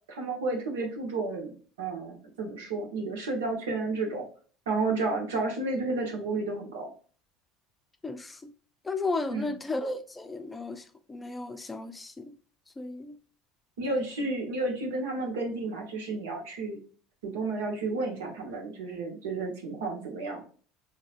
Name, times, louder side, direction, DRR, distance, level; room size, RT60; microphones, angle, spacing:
voice 1, 0.1-4.2 4.7-6.9 9.3-9.5 13.8-16.8 17.2-20.4, right 3 dB, 80° right, 1.2 m, -32 dB
voice 2, 8.0-8.5 8.8-12.3 12.8-13.2, left 3 dB, 15° left, 0.5 m, -34 dB
4.2 x 2.9 x 2.5 m
hypercardioid pair, 75°, 0 cm